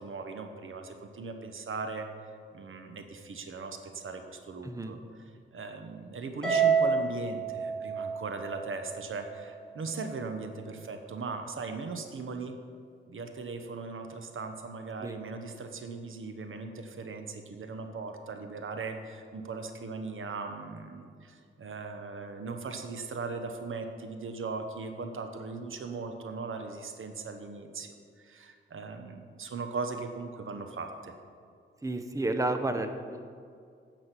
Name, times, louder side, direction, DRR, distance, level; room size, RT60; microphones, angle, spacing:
voice 1, 0.0-2.1 2.5-5.0 5.5-12.6 13.1-31.1, right 4 dB, 75° right, 6 dB, 1.1 m, -39 dB
voice 2, 4.6-4.9 15.0-15.2 31.8-33.3, right 2 dB, 15° right, 7 dB, 0.8 m, -31 dB
Harp, 6.4-8.9, right 6 dB, 5° left, 3.3 m, -27 dB
10.0 x 6.3 x 8.3 m, 2.2 s
cardioid pair, 80°, 21 cm